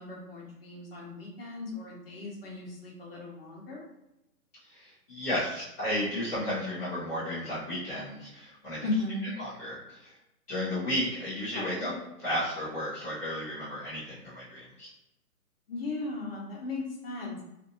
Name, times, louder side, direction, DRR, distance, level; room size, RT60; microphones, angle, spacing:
voice 1, 0.0-3.9 8.8-9.3 11.5-12.0 15.7-17.4, left 3 dB, 40° left, -3 dB, 0.8 m, -36 dB
voice 2, 4.6-8.8 9.4-10.1 10.5-11.9 12.2-14.9, equal, 10° left, -15 dB, 0.5 m, -33 dB
2.5 x 2.4 x 2.7 m, 0.90 s
figure-of-eight pair, 135°, 46 cm